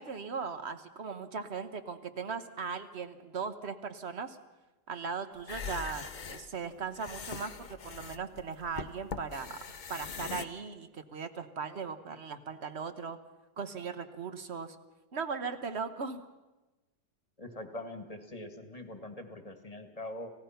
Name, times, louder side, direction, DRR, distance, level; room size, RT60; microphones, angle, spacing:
voice 1, 0.0-4.4 4.9-9.6 9.9-13.2 13.6-14.8 15.1-16.3, right 5 dB, 40° right, 11 dB, 1.2 m, -38 dB
sound 1, 5.4-10.4, left 6 dB, 90° left, 0.4 m, -42 dB
voice 2, 17.4-20.3, left 1 dB, 20° left, 8 dB, 1.6 m, -43 dB
29.5 x 16.5 x 5.8 m, 1.1 s
omnidirectional pair, 1.9 m